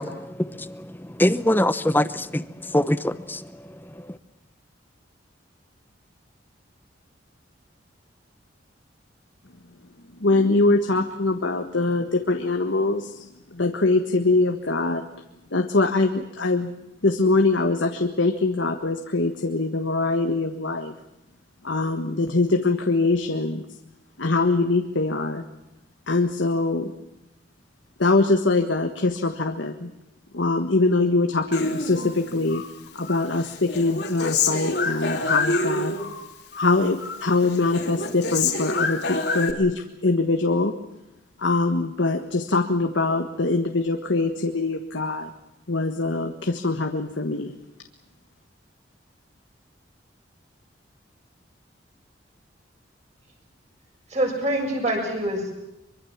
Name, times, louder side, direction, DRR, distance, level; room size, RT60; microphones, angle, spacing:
voice 1, 0.0-4.2, left 1 dB, 10° left, 13 dB, 0.9 m, -24 dB
voice 2, 10.2-15.1 15.5-16.8 17.0-20.9 21.6-23.6 24.2-25.4 26.1-26.9 28.0-29.9 30.3-32.6 32.9-35.9 36.6-40.7 41.4-45.3 45.7-47.6, left 3 dB, 80° left, 5 dB, 1.5 m, -23 dB
Human voice, 31.5-32.7 33.0-36.2 36.5-37.3 37.5-39.5, left 3 dB, 60° left, 3.1 m, -27 dB
voice 3, 54.1-55.5, right 1 dB, 35° right, 1 dB, 7.1 m, -25 dB
24.0 x 24.0 x 7.4 m, 0.92 s
head